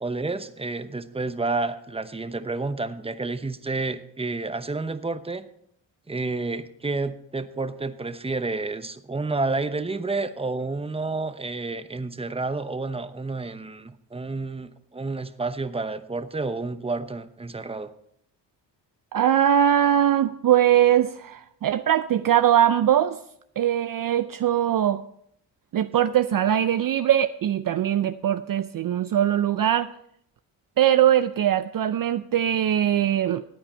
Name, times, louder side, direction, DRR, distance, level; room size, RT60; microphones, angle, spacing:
voice 1, 0.0-5.5 6.1-17.9, right 3 dB, 15° right, 11 dB, 0.9 m, -30 dB
voice 2, 19.1-23.2 23.6-25.0 25.7-29.9 30.8-33.4, right 10 dB, 50° right, 11 dB, 0.5 m, -21 dB
14.0 x 8.8 x 4.4 m, 0.71 s
cardioid pair, 65°, 46 cm